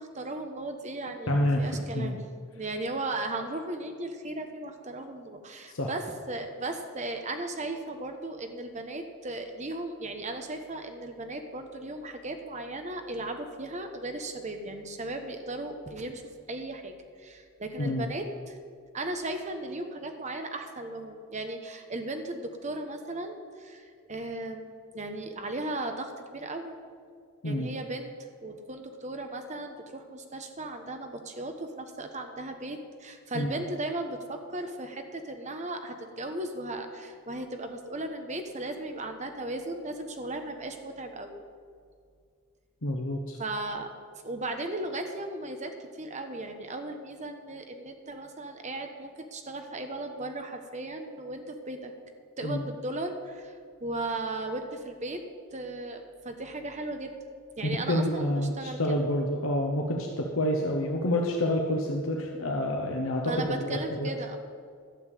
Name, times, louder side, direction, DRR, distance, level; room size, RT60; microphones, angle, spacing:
voice 1, 0.0-2.2 2.5-16.2 16.5-18.6 18.9-26.7 27.4-28.1 28.4-41.4 43.4-43.9 44.2-51.9 52.4-53.5 53.8-55.2 55.5-57.1 57.6-58.9 63.2-64.4, right 2 dB, 30° right, 5 dB, 1.1 m, -36 dB
voice 2, 1.3-2.1 5.7-5.9 17.8-18.1 27.4-27.7 33.3-33.6 42.8-43.4 52.4-52.6 57.6-64.1, left 1 dB, 65° left, 0 dB, 1.1 m, -28 dB
11.5 x 7.0 x 8.5 m, 2.1 s
head